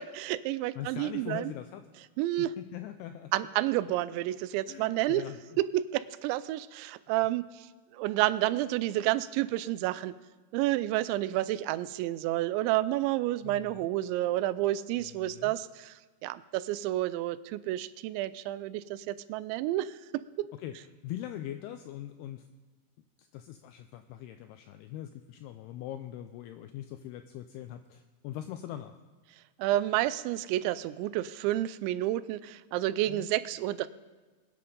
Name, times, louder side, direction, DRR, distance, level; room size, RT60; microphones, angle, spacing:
voice 1, 0.0-1.5 2.2-2.5 3.3-5.2 5.6-7.7 7.9-10.1 10.5-15.9 16.2-20.5 29.6-33.9, right 15 dB, 90° right, 16 dB, 2.9 m, -30 dB
voice 2, 0.8-1.9 2.4-3.3 4.7-5.6 13.4-13.9 15.0-15.5 20.5-22.5 23.2-29.0 33.1-33.3, left 12 dB, 90° left, 8 dB, 2.3 m, -42 dB
22.5 x 10.0 x 3.9 m, 1.3 s
omnidirectional pair, 5.2 m